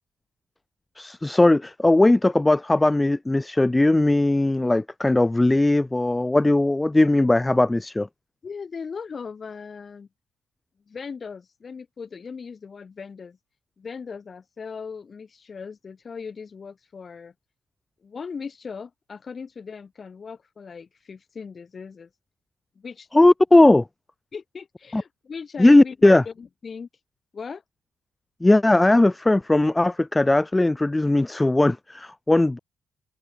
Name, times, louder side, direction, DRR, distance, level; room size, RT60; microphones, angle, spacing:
voice 1, 1.0-8.1 23.1-23.8 24.9-25.0 25.6-26.2 28.4-32.6, left 2 dB, 10° left, 0.4 m, -18 dB
voice 2, 8.4-10.1 10.9-13.4 13.8-17.3 18.0-22.1 22.8-23.1 24.3-26.0 26.3-26.9 27.3-27.6, left 5 dB, 30° left, 0.9 m, -38 dB
cardioid pair, 150°, 0 cm